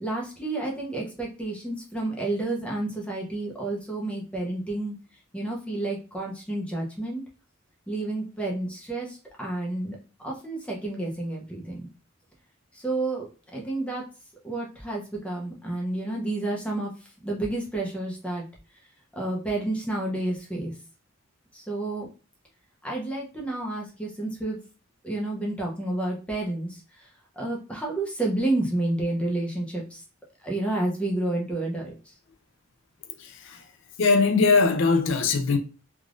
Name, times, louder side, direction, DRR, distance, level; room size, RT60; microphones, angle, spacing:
voice 1, 0.0-5.0 5.3-7.2 7.9-10.0 10.2-11.9 12.7-13.3 13.5-14.0 14.4-16.9 17.2-18.4 19.1-20.7 21.5-22.1 22.8-24.6 25.0-26.8 27.4-30.0 30.4-31.9, right 2 dB, 5° left, 0.7 m, -30 dB
voice 2, 33.2-33.7 34.0-35.6, left 4 dB, 65° left, 0.4 m, -21 dB
3.4 x 2.4 x 2.5 m
head